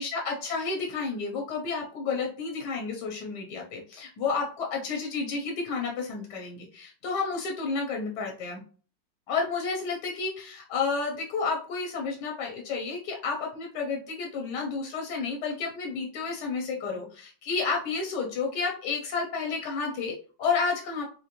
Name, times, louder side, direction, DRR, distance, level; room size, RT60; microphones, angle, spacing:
voice 1, 0.0-8.6 9.3-21.1, left 4 dB, 70° left, 0 dB, 1.3 m, -31 dB
3.8 x 2.5 x 2.9 m, 0.40 s
omnidirectional pair, 1.9 m